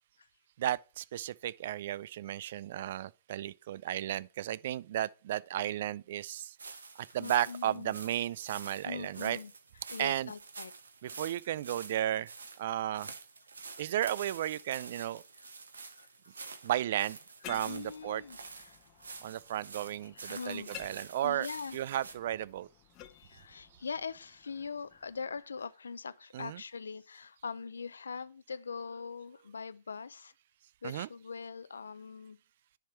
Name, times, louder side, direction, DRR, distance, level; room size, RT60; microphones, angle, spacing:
voice 1, 0.6-6.6 7.0-9.4 10.0-10.3 11.0-12.3 12.6-13.1 13.8-15.2 16.6-17.2 17.5-18.2 19.2-21.5 21.7-22.7 26.3-26.6 30.8-31.1, right 12 dB, 60° right, 0.3 m, -34 dB
sound 1, 6.6-22.1, right 4 dB, 85° right, 1.0 m, -48 dB
voice 2, 7.2-8.0 8.8-9.5 9.9-10.7 13.7-13.8 15.4-15.5 15.7-16.4 17.6-19.2 20.0-20.7 21.2-21.8 23.1-30.3 30.8-32.4, left 5 dB, 85° left, 0.4 m, -42 dB
sound 2, 17.4-25.4, left 11 dB, 35° left, 0.8 m, -53 dB
10.5 x 3.6 x 4.4 m
hypercardioid pair, 125°, 0 cm